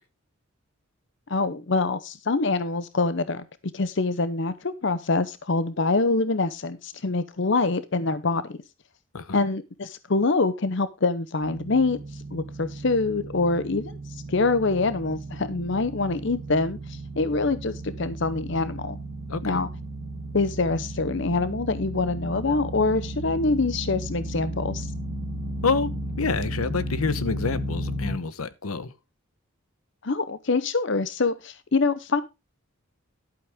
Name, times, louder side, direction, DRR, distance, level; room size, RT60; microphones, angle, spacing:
voice 1, 1.3-3.5 3.7-8.6 9.3-12.0 12.3-19.0 19.4-19.7 20.3-24.9 30.0-32.2, left 3 dB, 55° left, 0.7 m, -25 dB
sound 1, 11.4-28.1, right 1 dB, 50° right, 1.8 m, -34 dB
voice 2, 26.2-28.9, left 4 dB, 90° left, 1.0 m, -27 dB
11.5 x 8.2 x 3.5 m
head